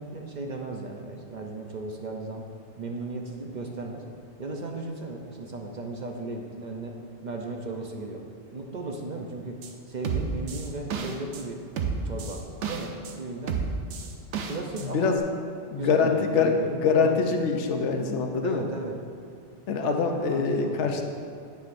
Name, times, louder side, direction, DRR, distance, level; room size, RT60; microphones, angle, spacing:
voice 1, 0.0-2.4 2.8-4.1 4.4-8.3 8.5-11.6 12.0-13.6 14.5-15.1 15.7-17.2 18.4-19.0 19.8-21.0, right 2 dB, 50° right, 2 dB, 0.6 m, -35 dB
sound 1, 9.6-9.7 10.0-11.4 11.8-13.1 13.5-14.9 15.2-15.3, right 6 dB, 90° right, 1.0 m, -31 dB
voice 2, 14.8-15.3 15.7-18.7 19.7-21.0, left 5 dB, 80° left, 4 dB, 1.0 m, -24 dB
9.3 x 9.2 x 2.5 m, 2.3 s
omnidirectional pair, 1.2 m